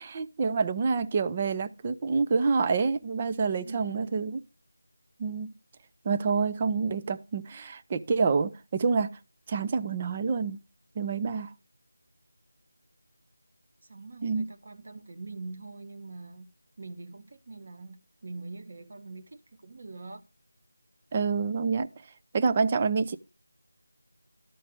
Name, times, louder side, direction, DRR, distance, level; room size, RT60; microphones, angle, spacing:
voice 1, 0.0-4.4 5.2-5.5 6.0-9.2 9.5-10.6 11.0-11.5 14.2-14.5 21.1-21.9 22.3-23.2, right 5 dB, 20° right, 0.5 m, -27 dB
voice 2, 3.6-4.2 13.8-16.5 16.8-20.2, right 3 dB, 45° right, 1.3 m, -43 dB
13.0 x 4.5 x 6.1 m
figure-of-eight pair, 170°, 0 cm